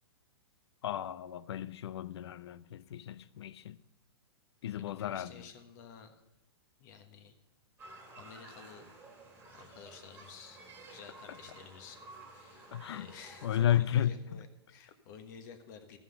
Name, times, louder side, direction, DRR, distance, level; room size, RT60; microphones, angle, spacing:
voice 1, 0.8-3.8 4.6-5.5 12.7-13.1 13.4-14.2, left 10 dB, 75° left, 0.5 m, -33 dB
voice 2, 4.8-6.2 6.8-7.3 8.1-8.9 9.5-16.0, left 6 dB, 45° left, 1.4 m, -52 dB
sound 1, 7.8-13.7, right 2 dB, 15° right, 1.9 m, -53 dB
14.0 x 5.7 x 6.7 m
hypercardioid pair, 145°, 14 cm